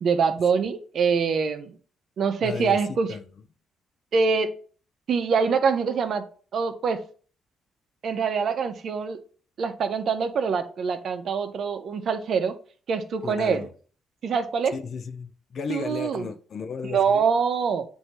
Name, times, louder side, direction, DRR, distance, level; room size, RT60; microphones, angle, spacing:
voice 1, 0.0-1.7 2.2-3.1 4.1-4.5 5.1-6.2 6.5-7.0 8.0-9.2 9.6-12.5 12.9-13.6 14.2-14.7 15.7-16.3 16.8-17.9, right 5 dB, 60° right, 0.8 m, -24 dB
voice 2, 2.4-3.3 13.2-13.7 14.7-17.3, left 5 dB, 50° left, 0.6 m, -34 dB
7.9 x 2.8 x 4.4 m
cardioid pair, 90°, 0 cm